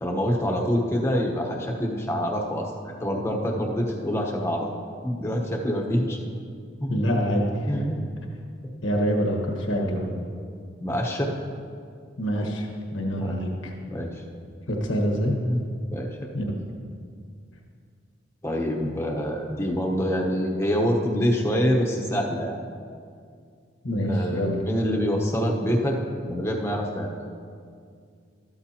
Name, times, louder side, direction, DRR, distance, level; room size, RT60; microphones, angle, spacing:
voice 1, 0.0-4.7 5.0-6.2 6.8-7.0 7.7-8.0 9.7-10.3 10.8-11.3 13.2-13.4 13.8-14.2 15.4-15.6 15.9-16.3 18.4-22.6 24.0-26.0 26.3-27.2, equal, 15° left, 0 dB, 1.0 m, -26 dB
voice 2, 6.9-7.9 8.8-10.0 12.2-12.7 12.9-13.7 14.7-15.4 16.3-16.6 23.8-24.6, equal, 85° left, 1 dB, 1.4 m, -25 dB
13.0 x 12.5 x 2.9 m, 2.2 s
head